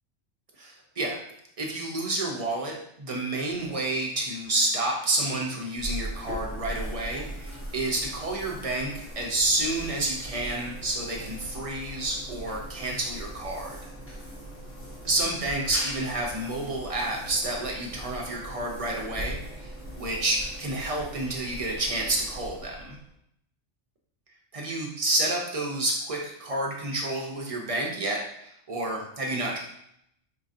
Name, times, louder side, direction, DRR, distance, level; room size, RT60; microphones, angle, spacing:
voice 1, 0.6-1.2 1.6-13.8 15.0-19.7 20.0-23.0 24.5-29.6, right 2 dB, 50° right, -1 dB, 0.4 m, -29 dB
sound 1, 5.8-23.1, right 1 dB, 15° left, 0.6 m, -40 dB
4.6 x 2.6 x 2.4 m, 0.74 s
omnidirectional pair, 1.3 m